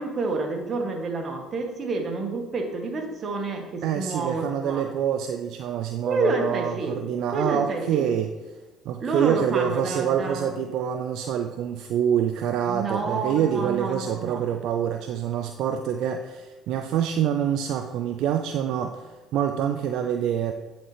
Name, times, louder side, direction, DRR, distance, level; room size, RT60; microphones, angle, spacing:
voice 1, 0.0-4.9 6.0-7.0 7.3-8.1 9.0-10.5 12.7-14.5, right 3 dB, 45° right, 3 dB, 1.5 m, -29 dB
voice 2, 3.8-8.3 8.9-20.5, right 9 dB, 70° right, 7 dB, 0.4 m, -26 dB
10.5 x 4.3 x 3.4 m, 1.3 s
hypercardioid pair, 65°, 0 cm